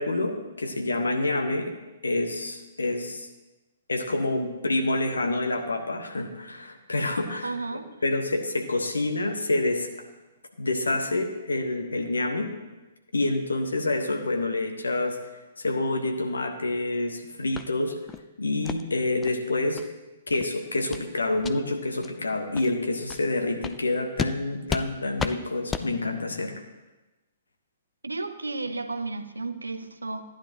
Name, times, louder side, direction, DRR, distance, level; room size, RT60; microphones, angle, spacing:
voice 1, 0.0-1.7 2.0-3.3 3.9-7.5 8.0-9.9 10.6-12.5 13.1-15.2 15.6-17.9 18.4-19.8 20.3-26.5, left 2 dB, 70° left, 4 dB, 1.3 m, -27 dB
voice 2, 7.4-7.9 28.0-30.2, right 3 dB, 75° right, 9 dB, 0.7 m, -33 dB
sound 1, 17.5-17.7 18.1-18.2 18.6-18.8 19.2-19.3 19.8-19.9 20.3-20.5 20.9-21.1 21.4-21.5 22.0-22.1 22.5-22.7 23.1-23.2 23.6-23.8 24.2-24.3 24.7-24.9 25.2-25.3 25.7-25.9, left 6 dB, 15° left, 0.4 m, -32 dB
14.5 x 10.0 x 3.0 m, 1.1 s
figure-of-eight pair, 115°, 0 cm